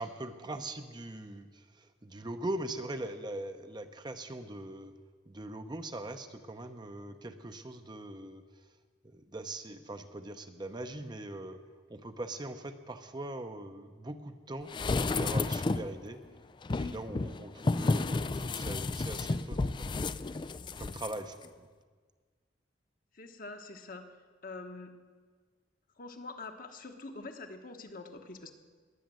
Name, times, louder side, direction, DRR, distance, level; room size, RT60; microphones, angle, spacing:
voice 1, 0.0-5.0 5.3-8.4 9.1-11.6 11.9-14.7 15.0-16.2 16.7-21.7, right 1 dB, 25° right, 7 dB, 0.8 m, -41 dB
sound 1, 14.7-16.0 16.6-21.1 21.4-21.5, left 3 dB, 25° left, 0.3 m, -32 dB
voice 2, 23.1-24.0 24.4-24.9 26.0-28.5, left 3 dB, 50° left, 5 dB, 1.2 m, -45 dB
21.0 x 8.4 x 7.7 m, 1.5 s
head